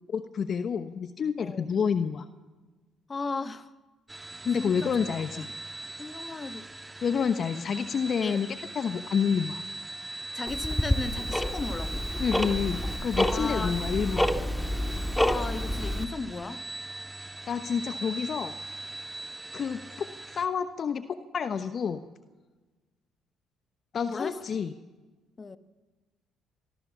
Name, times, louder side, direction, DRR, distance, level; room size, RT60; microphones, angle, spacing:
voice 1, 0.1-2.3 4.4-5.5 7.0-9.6 12.2-14.3 17.5-18.5 19.5-20.1 20.3-22.0 23.9-24.7, left 6 dB, 50° left, 10 dB, 1.1 m, -29 dB
voice 2, 3.1-3.7 4.6-4.9 5.3-5.4 6.0-6.7 8.2-8.4 10.3-12.0 13.3-13.8 15.2-16.6 24.1-24.4 25.4-25.6, left 4 dB, 30° left, 11 dB, 1.5 m, -35 dB
sound 1, 4.1-20.5, right 2 dB, 15° right, 1.8 m, -40 dB
Tick-tock, 10.5-16.0, left 1 dB, 5° left, 2.0 m, -29 dB
26.0 x 19.5 x 7.4 m, 1.2 s
hypercardioid pair, 55°, 0 cm